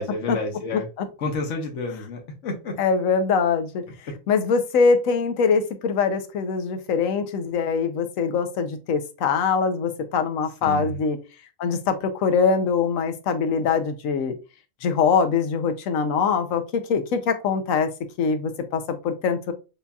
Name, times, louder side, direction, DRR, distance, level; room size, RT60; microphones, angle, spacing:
voice 1, 0.0-0.8 1.2-2.7 10.6-10.9, left 2 dB, 65° left, 1 dB, 1.4 m, -29 dB
voice 2, 0.7-1.1 2.8-3.8 4.3-11.2 11.6-14.3 14.8-17.9 18.2-19.5, left 5 dB, 85° left, 7 dB, 1.1 m, -23 dB
7.0 x 2.7 x 2.3 m, 0.30 s
omnidirectional pair, 1.4 m